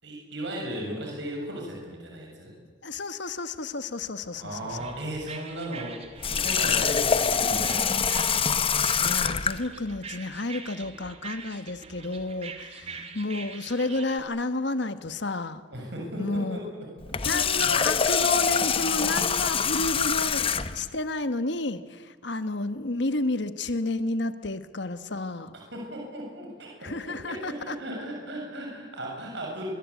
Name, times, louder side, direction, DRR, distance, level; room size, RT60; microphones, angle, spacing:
voice 1, 0.0-2.5 4.3-7.9 12.8-13.0 15.7-16.8 17.2-17.7 25.7-26.9 27.2-29.7, right 1 dB, 60° right, -1 dB, 6.8 m, -36 dB
voice 2, 2.8-4.9 9.0-15.6 16.2-16.7 17.2-25.5 26.8-27.8, left 2 dB, 60° left, 11 dB, 1.3 m, -31 dB
sound 1, 4.7-14.2, right 5 dB, 30° right, 2.2 m, -43 dB
Water tap faucet, 6.2-9.6 17.0-20.8, left 6 dB, 25° left, 0.9 m, -25 dB
25.5 x 23.0 x 8.4 m, 1.5 s
head